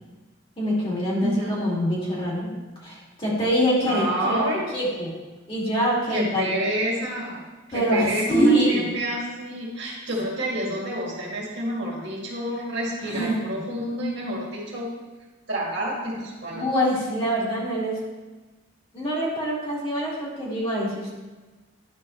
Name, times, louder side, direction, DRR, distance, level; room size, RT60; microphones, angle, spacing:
voice 1, 0.6-2.5 2.8-5.1 5.5-6.5 7.7-8.9 13.0-13.6 16.5-18.0 18.9-21.1, equal, 25° left, -5 dB, 2.2 m, -24 dB
voice 2, 1.2-1.6 3.8-4.6 6.1-7.4 7.7-14.9 15.5-16.7, right 1 dB, 55° right, -4 dB, 2.1 m, -28 dB
11.0 x 6.4 x 3.2 m, 1.2 s
head